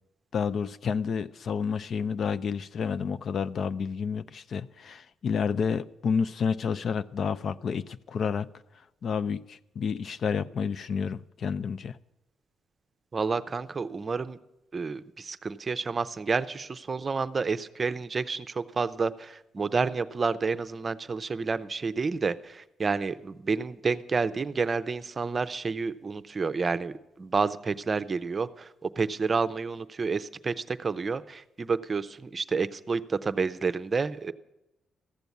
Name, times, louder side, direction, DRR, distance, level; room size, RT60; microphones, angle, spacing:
voice 1, 0.3-8.5 9.0-12.0, left 6 dB, 55° left, 0.4 m, -30 dB
voice 2, 13.1-14.4 14.7-34.3, right 4 dB, 35° right, 0.6 m, -30 dB
14.5 x 7.0 x 9.3 m
cardioid pair, 90°, 0 cm